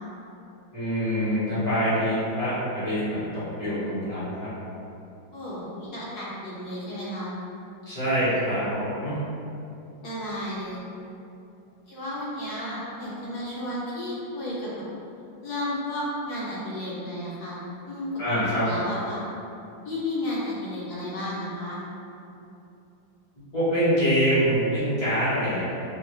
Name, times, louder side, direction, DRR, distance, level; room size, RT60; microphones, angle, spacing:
voice 1, 0.7-4.5 7.8-9.1 18.2-18.7 23.5-25.6, equal, 25° left, -12 dB, 1.3 m, -25 dB
voice 2, 5.3-7.3 10.0-10.8 11.9-14.7 15.4-17.6 17.9-18.1 18.4-19.2 19.8-21.8, left 1 dB, 60° left, -7 dB, 1.2 m, -32 dB
4.2 x 3.0 x 3.1 m, 2.7 s
omnidirectional pair, 2.2 m